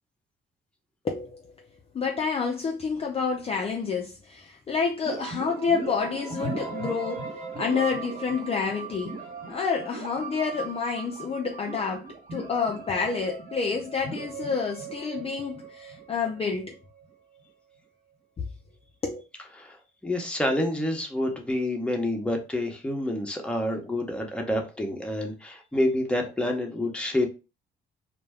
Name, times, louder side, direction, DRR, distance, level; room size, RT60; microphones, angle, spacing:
voice 1, 1.0-1.5 1.9-7.3 7.6-9.2 9.5-16.7 19.0-19.2, left 5 dB, 30° left, 0.4 m, -29 dB
sound 1, 5.0-16.8, right 4 dB, 45° right, 1.1 m, -38 dB
voice 2, 20.0-27.3, left 1 dB, 5° left, 0.8 m, -28 dB
2.1 x 2.1 x 3.4 m
cardioid pair, 90°, 20 cm